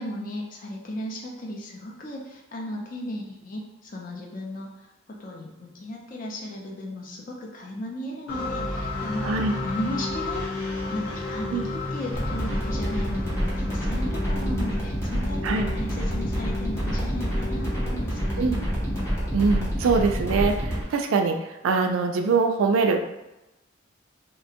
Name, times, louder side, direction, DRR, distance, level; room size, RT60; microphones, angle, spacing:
voice 1, 0.0-4.7 5.1-9.3 9.6-10.4 10.9-15.5 15.7-18.5, left 1 dB, 40° left, -1 dB, 0.5 m, -35 dB
sound 1, 8.3-20.1, left 2 dB, 65° left, 1.0 m, -33 dB
sound 2, 12.1-20.8, equal, 15° left, 0.8 m, -28 dB
voice 2, 19.3-21.4 21.6-23.0, right 4 dB, 85° right, 5 dB, 0.3 m, -23 dB
2.7 x 2.2 x 2.8 m, 0.96 s
head